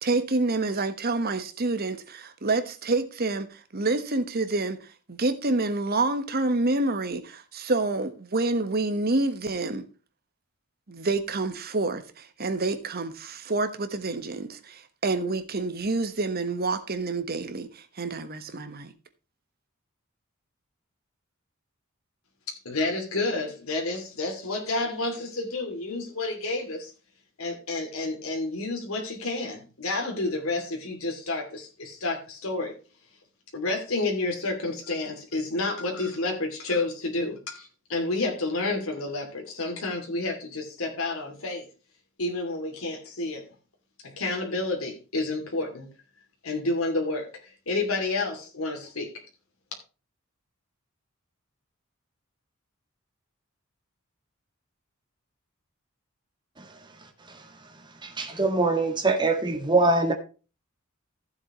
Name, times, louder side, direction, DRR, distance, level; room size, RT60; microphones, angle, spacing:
voice 1, 0.0-9.9 10.9-18.9, right 2 dB, 50° right, 1.3 m, -28 dB
voice 2, 22.5-26.9 27.4-32.7 33.5-41.7 42.2-43.4 44.0-45.9 46.4-49.1, left 2 dB, 90° left, 2.7 m, -30 dB
voice 3, 58.0-60.1, right 2 dB, 20° right, 1.9 m, -23 dB
15.0 x 7.4 x 3.1 m
head